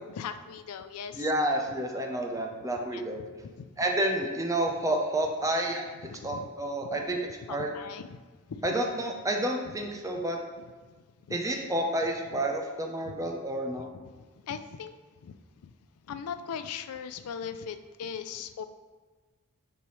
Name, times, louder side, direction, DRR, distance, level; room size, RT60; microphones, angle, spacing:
voice 1, 0.2-1.3 2.9-3.6 6.0-6.5 6.8-7.0 7.5-8.2 8.5-8.6 9.6-9.8 10.6-10.7 11.3-11.4 12.3-12.4 13.0-13.3 13.7-14.1 14.4-14.9 15.2-15.3 15.6-15.7 16.1-18.6, left 7 dB, 85° left, 10 dB, 0.4 m, -40 dB
voice 2, 1.2-3.2 3.8-5.9 6.2-7.2 7.5-7.7 8.6-10.4 11.3-13.9, right 1 dB, 15° right, 2 dB, 0.6 m, -29 dB
6.9 x 4.6 x 3.1 m, 1.4 s
head